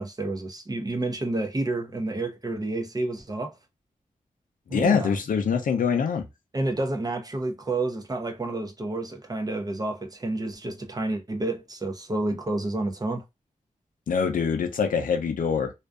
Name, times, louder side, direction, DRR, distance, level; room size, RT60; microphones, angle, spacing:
voice 1, 0.0-3.6 4.7-5.2 6.5-13.2, right 2 dB, 30° right, 0.6 m, -29 dB
voice 2, 4.7-6.3 14.1-15.7, left 6 dB, 90° left, 0.5 m, -24 dB
2.5 x 2.2 x 2.3 m
wide cardioid pair, 65°, 13 cm